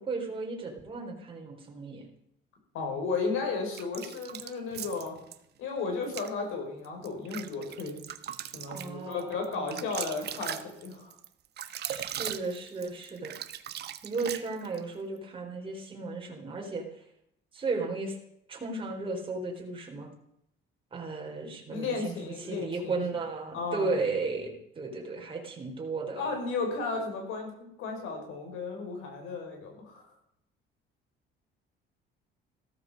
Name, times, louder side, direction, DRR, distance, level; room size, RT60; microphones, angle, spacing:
voice 1, 0.0-2.0 3.3-3.4 8.7-9.8 11.9-13.3 14.0-16.8 17.5-18.1 18.5-20.1 20.9-22.1 22.4-26.3, right 3 dB, 25° right, 0 dB, 4.0 m, -35 dB
voice 2, 2.7-5.2 5.6-8.0 8.5-11.2 21.7-23.0 23.5-24.0 26.2-30.1, left 4 dB, 75° left, 3 dB, 5.8 m, -34 dB
sound 1, 3.7-5.4 6.0-6.3 6.8-14.8, right 10 dB, 50° right, 1.2 m, -39 dB
16.0 x 13.5 x 5.4 m, 0.77 s
cardioid pair, 130°, 21 cm